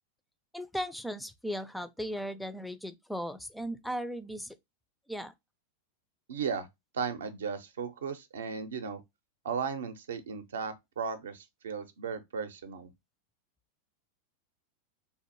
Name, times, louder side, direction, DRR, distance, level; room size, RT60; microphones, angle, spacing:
voice 1, 0.5-4.5 5.1-5.3, equal, ahead, 0.4 m, -37 dB
voice 2, 6.3-6.7 6.9-9.0 9.4-12.9, right 6 dB, 65° right, 0.5 m, -36 dB
3.5 x 2.5 x 2.8 m
figure-of-eight pair, 90°, 0 cm